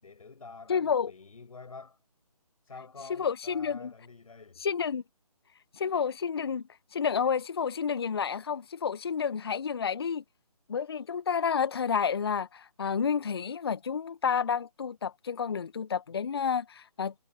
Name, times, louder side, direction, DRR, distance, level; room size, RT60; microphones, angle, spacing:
voice 1, 0.0-2.0 2.6-4.6, left 4 dB, 60° left, 6.7 m, -48 dB
voice 2, 0.7-1.1 3.1-3.9 4.6-5.0 5.7-6.6 6.9-10.2 10.7-17.1, left 6 dB, 40° left, 0.4 m, -30 dB
figure-of-eight pair, 155°, 20 cm